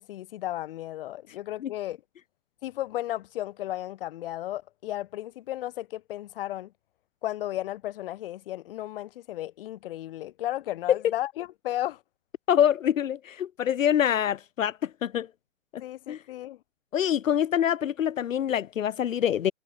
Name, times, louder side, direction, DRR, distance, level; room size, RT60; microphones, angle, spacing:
voice 1, 0.0-2.0 2.6-6.7 7.2-12.0 15.8-16.6, left 14 dB, 45° left, 1.7 m, -34 dB
voice 2, 12.5-15.3 16.1-16.2 16.9-19.5, left 10 dB, 75° left, 1.1 m, -25 dB
hypercardioid pair, 150°, 40 cm